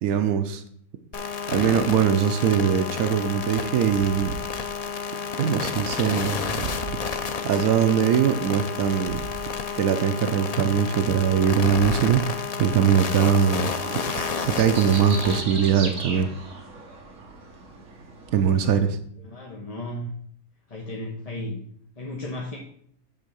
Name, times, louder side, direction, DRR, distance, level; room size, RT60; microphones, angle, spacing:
voice 1, 0.0-0.6 1.5-4.4 5.4-6.7 7.1-9.3 9.8-12.2 12.6-13.7 14.2-16.3 18.3-19.0, right 8 dB, 80° right, 6 dB, 1.2 m, -22 dB
sound 1, 1.1-15.4, left 6 dB, 85° left, 0.3 m, -31 dB
sound 2, 3.9-13.4, right 3 dB, 35° right, 2.6 m, -42 dB
sound 3, 13.7-18.8, right 3 dB, 60° right, 1.8 m, -37 dB
voice 2, 19.2-20.1 20.7-21.6 22.0-22.6, left 1 dB, 30° left, -2 dB, 1.0 m, -34 dB
8.6 x 3.6 x 6.8 m, 0.64 s
omnidirectional pair, 1.5 m